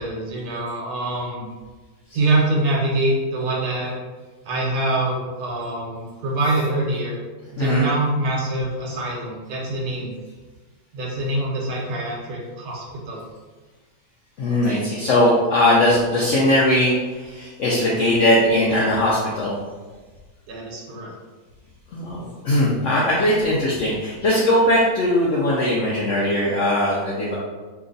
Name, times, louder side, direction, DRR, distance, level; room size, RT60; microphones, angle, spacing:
voice 1, 0.0-1.5 2.1-4.0 4.4-7.2 7.5-10.1 10.9-13.2 20.5-21.1, right 2 dB, 75° right, -3 dB, 1.2 m, -24 dB
voice 2, 7.6-7.9 14.4-19.6 21.9-27.4, left 1 dB, 65° left, -6 dB, 0.8 m, -19 dB
2.9 x 2.5 x 3.8 m, 1.3 s
omnidirectional pair, 1.6 m